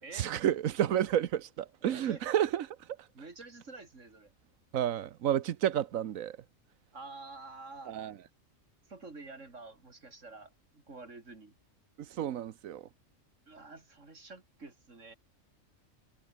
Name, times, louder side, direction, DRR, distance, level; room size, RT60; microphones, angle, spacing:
voice 1, 0.1-2.9 4.7-6.4 7.9-8.1 12.0-12.8, right 10 dB, 85° right, 1.3 m, -31 dB
voice 2, 1.8-2.3 3.1-4.3 6.9-7.9 8.9-11.5 13.5-15.1, right 3 dB, 65° right, 3.8 m, -48 dB
omnidirectional pair, 1.4 m